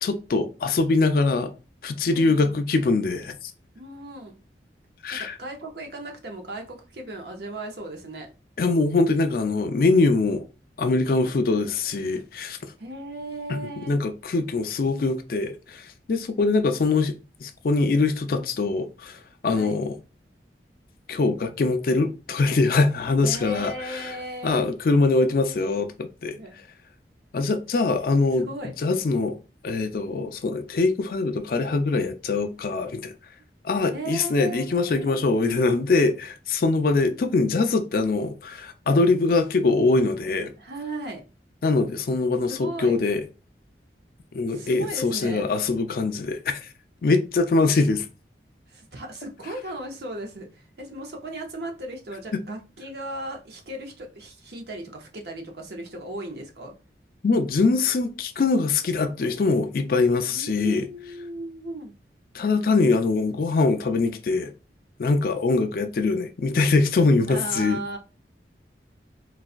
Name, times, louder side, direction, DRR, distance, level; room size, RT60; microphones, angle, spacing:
voice 1, 0.0-1.5 1.8-3.4 5.0-5.4 8.6-10.4 10.8-12.6 13.5-13.6 13.9-17.1 17.4-19.2 19.4-19.9 21.1-24.2 24.4-26.4 27.3-29.4 29.6-33.1 33.6-40.5 41.6-43.2 44.3-46.6 47.0-48.0 52.3-52.4 57.2-60.9 62.3-64.5 65.0-67.8, left 3 dB, 55° left, 0.4 m, -23 dB
voice 2, 2.1-2.6 3.7-4.4 5.1-8.3 12.8-14.0 19.5-19.7 23.2-24.6 26.4-26.6 27.8-28.0 28.3-28.7 33.9-35.2 40.6-41.2 42.5-43.0 44.5-45.5 47.6-47.7 48.7-56.7 60.3-61.9 67.3-68.0, right 1 dB, 65° right, 0.7 m, -36 dB
4.0 x 2.3 x 2.4 m
head